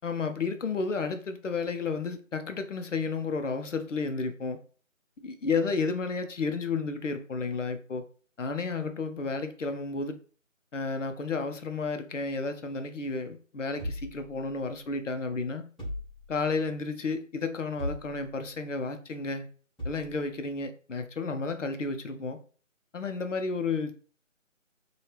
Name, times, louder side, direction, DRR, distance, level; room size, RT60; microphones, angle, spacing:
voice 1, 0.0-4.6 5.2-8.0 8.4-10.2 10.7-15.7 16.3-19.5 19.8-22.4 22.9-23.9, left 4 dB, 65° left, 0.6 m, -32 dB
sound 1, 13.8-14.9 15.8-16.7 17.8-18.5 19.8-20.3, left 1 dB, ahead, 0.8 m, -38 dB
2.9 x 2.3 x 3.2 m
figure-of-eight pair, 180°, 40 cm